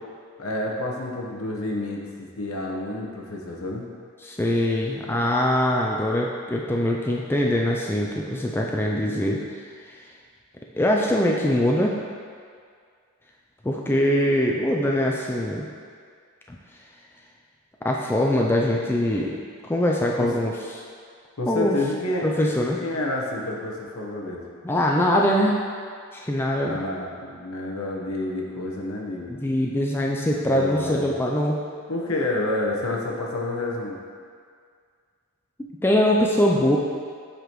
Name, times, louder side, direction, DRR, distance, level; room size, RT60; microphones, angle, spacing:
voice 1, 0.4-3.9 20.2-20.3 21.4-22.3 22.8-24.4 26.6-29.3 30.4-31.1 31.9-34.0, left 2 dB, 75° left, -1 dB, 1.0 m, -29 dB
voice 2, 4.2-9.4 10.8-11.9 13.6-15.7 16.5-16.6 17.8-19.3 19.7-20.5 21.5-21.8 22.2-22.8 24.6-25.6 26.1-26.8 29.3-31.6 35.8-36.8, left 1 dB, 10° left, -2 dB, 0.3 m, -22 dB
7.9 x 5.0 x 3.0 m, 2.1 s
head